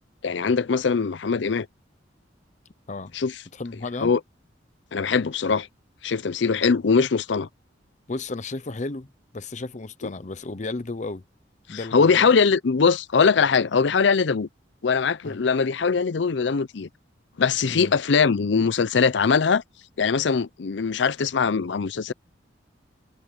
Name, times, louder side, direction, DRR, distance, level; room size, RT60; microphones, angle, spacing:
voice 1, 0.2-1.7 3.1-3.3 4.0-4.2 4.9-5.7 6.0-7.5 11.7-14.5 14.8-16.9 17.4-19.6 20.0-22.1, left 5 dB, 70° left, 0.6 m, -21 dB
voice 2, 3.5-4.2 8.1-11.2 11.7-12.3 15.2-15.4 17.7-17.9, left 3 dB, 40° left, 0.7 m, -33 dB
head